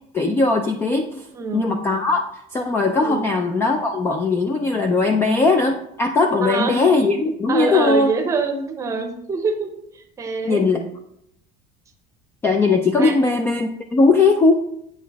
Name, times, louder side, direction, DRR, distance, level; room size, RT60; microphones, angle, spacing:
voice 1, 0.1-1.3 1.5-2.2 2.5-8.1 10.4-10.8 12.4-14.5, left 3 dB, 15° left, 5 dB, 0.3 m, -19 dB
voice 2, 1.3-1.7 3.0-3.3 6.4-6.8 7.5-10.7 13.0-13.1, right 4 dB, 15° right, 4 dB, 0.8 m, -25 dB
8.4 x 6.4 x 3.4 m, 0.74 s
cardioid pair, 180°, 19 cm